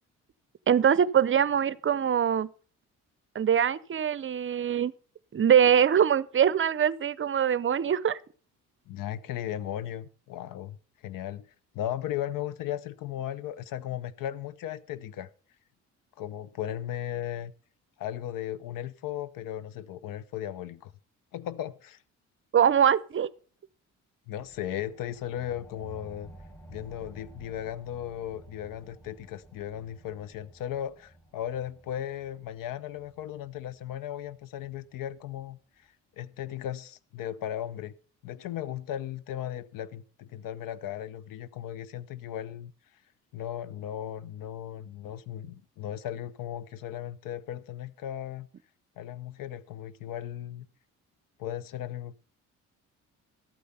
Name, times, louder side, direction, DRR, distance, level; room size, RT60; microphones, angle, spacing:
voice 1, 0.7-2.5 3.3-4.9 5.3-8.2 22.5-23.3, right 8 dB, 40° right, 0.6 m, -23 dB
voice 2, 8.9-10.8 11.0-15.3 16.2-17.5 18.0-20.9 21.3-22.0 24.3-26.3 26.7-35.9 36.2-37.9 38.2-42.7 43.3-48.5 49.0-50.7 51.4-52.1, left 11 dB, 75° left, 0.8 m, -36 dB
sound 1, 24.3-35.4, right 1 dB, 5° left, 2.0 m, -53 dB
13.0 x 8.4 x 5.5 m
supercardioid pair, 65°, 33 cm